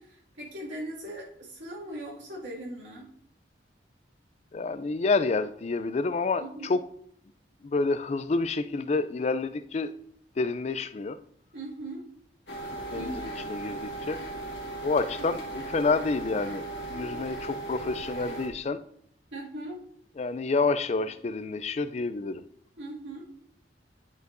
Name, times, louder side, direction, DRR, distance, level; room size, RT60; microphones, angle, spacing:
voice 1, 0.0-3.1 6.4-6.7 11.5-12.0 12.9-13.3 16.9-17.2 19.3-19.8 21.0-21.1 22.8-23.2, right 1 dB, 90° right, 2.2 m, -40 dB
voice 2, 4.5-6.8 7.6-9.9 10.4-11.2 12.9-14.2 14.8-18.8 20.2-22.5, left 3 dB, 35° left, 0.3 m, -28 dB
sound 1, 12.5-18.5, right 2 dB, 75° left, 1.6 m, -37 dB
9.9 x 5.3 x 2.6 m
head